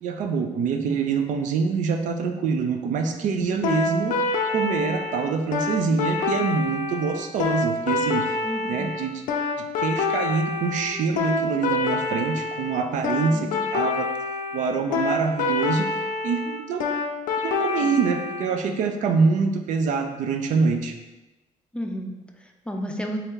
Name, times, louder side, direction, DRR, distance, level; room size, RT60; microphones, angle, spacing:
voice 1, 0.0-4.1 4.5-8.3 8.7-9.2 9.6-14.1 14.5-16.9 17.4-20.9, right 5 dB, 70° right, 6 dB, 0.4 m, -25 dB
sound 1, 3.6-18.5, left 4 dB, 85° left, 0.5 m, -26 dB
voice 2, 8.4-8.9 13.3-13.6 21.7-23.2, equal, 5° left, 2 dB, 0.4 m, -33 dB
3.3 x 2.7 x 3.7 m, 1.1 s
cardioid pair, 100°, 13 cm